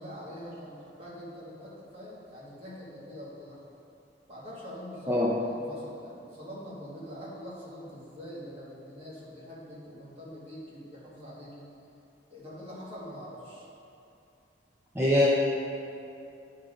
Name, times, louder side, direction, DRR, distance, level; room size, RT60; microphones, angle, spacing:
voice 1, 0.0-3.7 4.3-5.1 5.7-11.7 12.3-13.7, equal, 30° right, -8 dB, 1.9 m, -44 dB
voice 2, 14.9-15.3, left 1 dB, 10° right, -7 dB, 0.6 m, -22 dB
9.7 x 3.8 x 5.2 m, 2.7 s
head